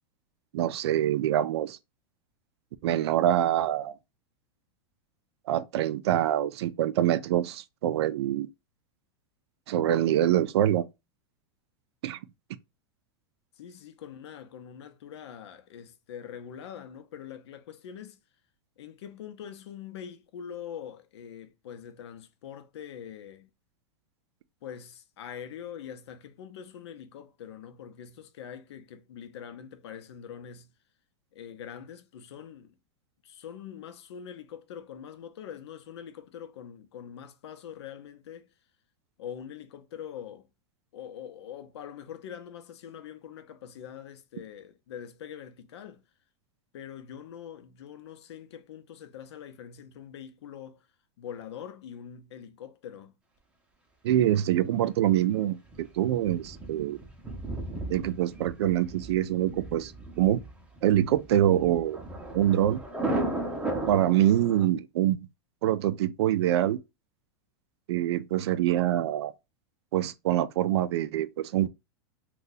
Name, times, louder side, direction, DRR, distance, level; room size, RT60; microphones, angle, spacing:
voice 1, 0.5-1.8 2.8-4.0 5.5-8.5 9.7-10.9 12.0-12.2 54.0-57.0 57.9-59.9 60.2-60.4 60.8-62.0 62.3-62.8 63.9-65.2 65.6-66.8 67.9-69.3 69.9-71.7, right 12 dB, 80° right, 0.4 m, -25 dB
voice 2, 13.5-18.2 18.8-23.5 24.6-30.7 31.3-32.8 33.2-38.5 39.2-40.5 40.9-46.0 46.7-50.9 51.2-53.1, left 8 dB, 80° left, 0.7 m, -43 dB
Thunder, 55.7-64.7, right 2 dB, 10° right, 0.6 m, -36 dB
2.7 x 2.3 x 3.8 m
supercardioid pair, 155°, 14 cm